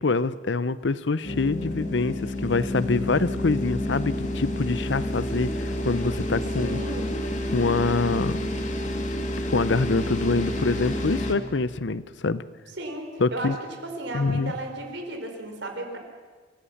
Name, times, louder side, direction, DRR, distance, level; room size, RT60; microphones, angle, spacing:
voice 1, 0.0-6.8 7.5-8.4 9.5-12.4 13.2-13.6 14.1-14.5, left 3 dB, 65° left, 16 dB, 0.7 m, -25 dB
sound 1, 1.2-11.3, left 1 dB, 40° left, 2.3 m, -29 dB
voice 2, 6.6-7.1 12.8-13.6 13.8-16.0, right 2 dB, 65° right, 4 dB, 4.1 m, -34 dB
28.0 x 16.5 x 7.2 m, 1.5 s
head